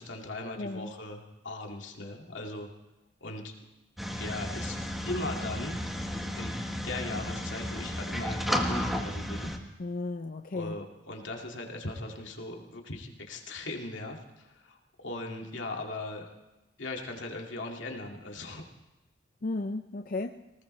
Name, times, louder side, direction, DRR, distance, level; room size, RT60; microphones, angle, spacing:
voice 1, 0.0-2.7 3.2-3.5 4.2-4.8 5.1-5.8 6.3-6.5 6.8-9.5 10.5-16.3 16.8-18.6, left 2 dB, 80° left, 1 dB, 2.2 m, -39 dB
voice 2, 0.6-0.9 9.8-10.8 19.4-20.4, left 2 dB, 45° left, 6 dB, 0.5 m, -34 dB
sound 1, 4.0-9.6, equal, ahead, 1.2 m, -33 dB
19.5 x 19.0 x 3.2 m, 1.1 s
head